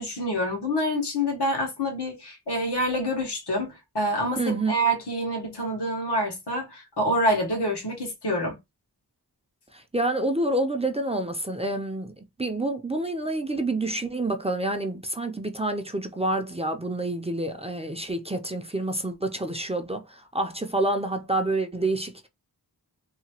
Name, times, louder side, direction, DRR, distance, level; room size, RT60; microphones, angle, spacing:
voice 1, 0.0-8.6, equal, 85° left, 1.2 m, -27 dB
voice 2, 4.4-4.7 9.7-12.1 12.4-22.3, right 2 dB, 15° right, 0.4 m, -28 dB
2.8 x 2.2 x 2.8 m
wide cardioid pair, 45°, 39 cm